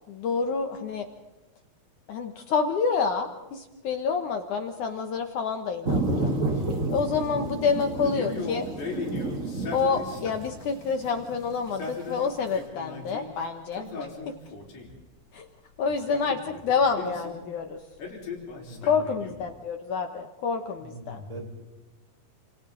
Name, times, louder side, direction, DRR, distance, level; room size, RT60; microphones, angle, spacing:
voice 1, 0.1-1.1 2.1-6.3 6.9-8.7 9.7-14.3 15.3-15.5 15.8-17.8 18.8-21.2, left 5 dB, 65° left, 6 dB, 2.2 m, -28 dB
sound 1, 5.8-12.5, right 2 dB, 65° right, 0.8 m, -31 dB
Male speech man speaking, 8.0-10.6 11.6-13.3 13.7-15.0 15.9-17.4 18.0-19.5, left 4 dB, 85° left, 6.4 m, -38 dB
voice 2, 18.6-18.9 20.8-21.5, right 1 dB, 10° right, 1 dB, 5.2 m, -41 dB
29.0 x 28.5 x 3.9 m, 1.1 s
omnidirectional pair, 4.5 m